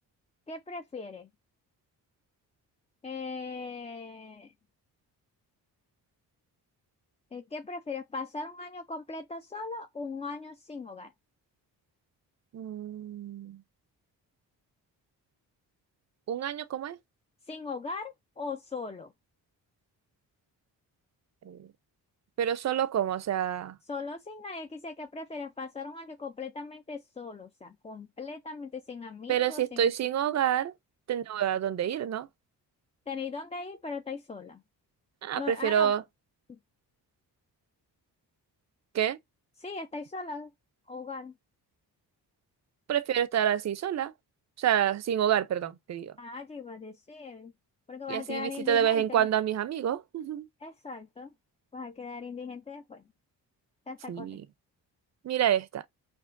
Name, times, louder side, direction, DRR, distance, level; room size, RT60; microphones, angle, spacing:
voice 1, 0.5-1.3 3.0-4.5 7.3-11.1 17.5-19.1 23.9-29.9 33.1-34.6 35.4-35.9 36.5-36.6 39.6-40.5 40.9-41.4 46.2-47.5 47.9-49.3 50.6-51.3 51.7-53.0 53.9-54.3, left 4 dB, 15° left, 0.3 m, -39 dB
voice 2, 12.5-13.6 16.3-17.0 21.4-21.7 22.4-23.8 29.3-30.7 31.1-32.3 35.2-36.0 38.9-39.2 42.9-44.1 44.6-46.1 48.1-50.5 54.1-54.4 55.2-55.8, right 10 dB, 40° right, 0.5 m, -28 dB
5.1 x 2.2 x 2.5 m
supercardioid pair, 50°, 44 cm